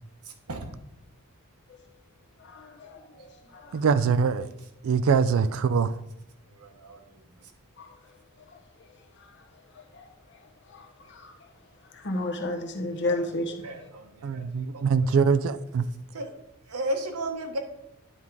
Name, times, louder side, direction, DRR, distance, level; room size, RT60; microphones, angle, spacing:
voice 1, 2.5-3.0 3.5-3.7 10.7-10.8 11.1-11.3 12.0-13.5, left 1 dB, 55° left, 3 dB, 1.1 m, -30 dB
voice 2, 3.7-4.5 4.8-5.9 14.2-15.9, right 5 dB, 65° right, 13 dB, 0.3 m, -23 dB
voice 3, 6.6-7.2 13.0-13.2 13.6-14.4 14.7-14.8 16.1-16.3 16.7-17.6, right 1 dB, 85° right, 4 dB, 1.2 m, -34 dB
9.5 x 3.6 x 4.6 m, 0.89 s
head